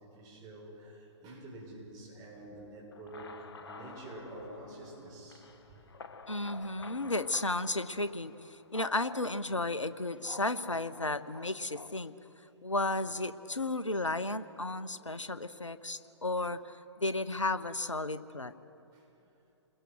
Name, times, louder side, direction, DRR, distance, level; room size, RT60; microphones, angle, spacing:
voice 1, 0.0-6.1 12.5-12.7 18.9-19.3, right 1 dB, 25° right, -3 dB, 7.5 m, -48 dB
sound 1, 2.9-8.7, left 4 dB, 55° left, 1.4 m, -51 dB
voice 2, 6.3-12.1 12.6-18.5, left 2 dB, 85° left, 13 dB, 1.1 m, -33 dB
30.0 x 21.5 x 6.3 m, 3.0 s
figure-of-eight pair, 125°, 15 cm